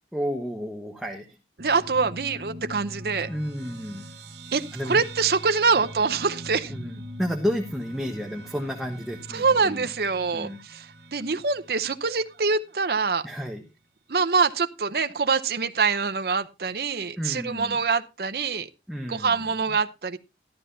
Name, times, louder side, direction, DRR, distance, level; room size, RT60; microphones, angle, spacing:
voice 1, 0.1-1.4 3.3-4.0 4.7-5.0 6.7-9.9 10.3-10.6 13.2-13.6 17.2-17.8 18.9-19.5, equal, ahead, 1 dB, 1.1 m, -31 dB
voice 2, 1.6-3.3 4.5-6.7 9.3-13.3 14.1-18.7 19.1-20.2, right 5 dB, 60° right, 11 dB, 0.7 m, -25 dB
sound 1, 1.6-12.4, equal, 80° right, 2.0 m, -42 dB
13.0 x 12.5 x 2.7 m, 0.27 s
head